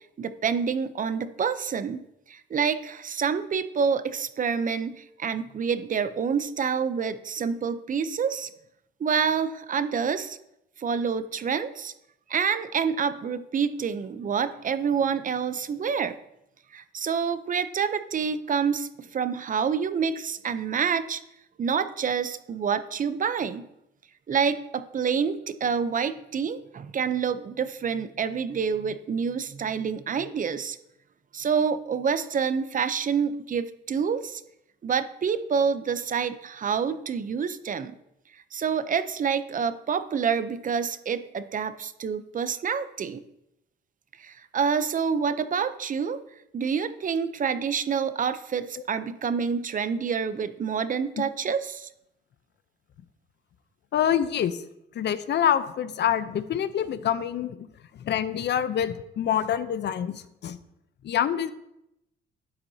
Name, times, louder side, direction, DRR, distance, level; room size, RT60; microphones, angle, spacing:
voice 1, 0.2-8.5 9.0-10.4 10.8-11.9 12.3-16.2 16.7-21.2 21.6-23.7 24.3-30.8 31.3-34.4 34.8-38.0 38.5-43.2 44.2-46.2 46.5-51.9, right 6 dB, 40° right, 12 dB, 0.6 m, -27 dB
voice 2, 53.9-54.6 54.9-57.7 57.9-60.6 61.0-61.5, left 9 dB, 60° left, 13 dB, 0.7 m, -26 dB
12.0 x 9.0 x 2.8 m, 0.83 s
cardioid pair, 90°, 20 cm